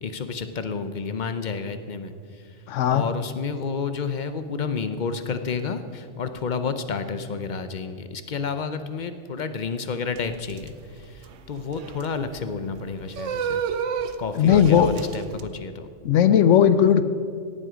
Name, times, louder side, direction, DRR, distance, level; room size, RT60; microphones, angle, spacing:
voice 1, 0.0-2.6 2.9-13.6 14.2-15.9, left 5 dB, 45° left, 10 dB, 0.7 m, -30 dB
voice 2, 2.7-3.0 14.4-14.9 16.0-17.0, left 9 dB, 75° left, 12 dB, 1.0 m, -17 dB
sound 1, 10.2-15.4, right 7 dB, 75° right, 1.0 m, -32 dB
17.5 x 7.7 x 5.0 m, 2.1 s
omnidirectional pair, 1.3 m